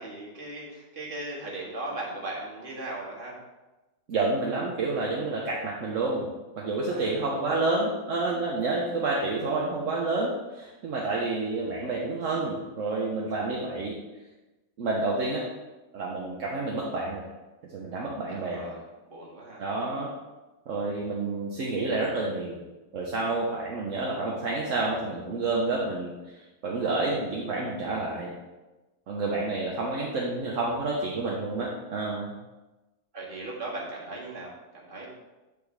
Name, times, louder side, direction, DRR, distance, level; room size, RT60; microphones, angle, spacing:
voice 1, 0.0-3.4 6.9-7.1 7.4-7.7 18.3-19.6 33.1-35.1, right 2 dB, 35° right, -5 dB, 2.0 m, -38 dB
voice 2, 4.1-13.9 14.8-15.4 15.9-17.2 17.7-18.7 19.6-20.1 20.7-22.6 22.9-28.3 29.1-32.3, right 3 dB, 65° right, -3 dB, 1.2 m, -29 dB
8.1 x 5.2 x 3.4 m, 1.1 s
omnidirectional pair, 1.5 m